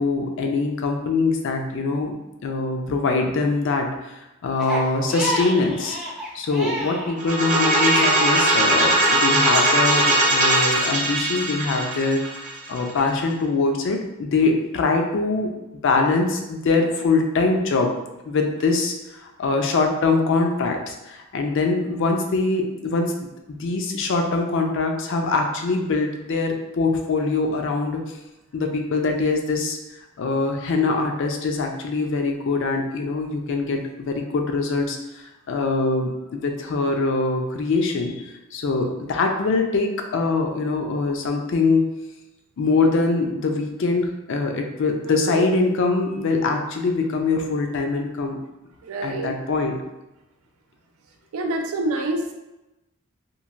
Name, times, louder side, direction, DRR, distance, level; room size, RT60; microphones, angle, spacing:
voice 1, 0.0-2.1 2.4-6.0 6.3-12.2 12.7-15.5 15.8-17.9 18.3-28.0 28.5-29.8 30.2-41.9 42.6-48.4 49.0-49.7, left 3 dB, 55° left, 3 dB, 0.4 m, -23 dB
Crying sobbing, 4.6-8.5 8.9-9.9, right 1 dB, ahead, 0.5 m, -29 dB
sound 1, 7.2-13.0, right 1 dB, 35° right, 0.7 m, -20 dB
voice 2, 45.0-45.4 48.8-49.6 51.3-52.3, right 2 dB, 80° right, 4 dB, 0.4 m, -28 dB
3.1 x 2.5 x 2.4 m, 0.98 s
head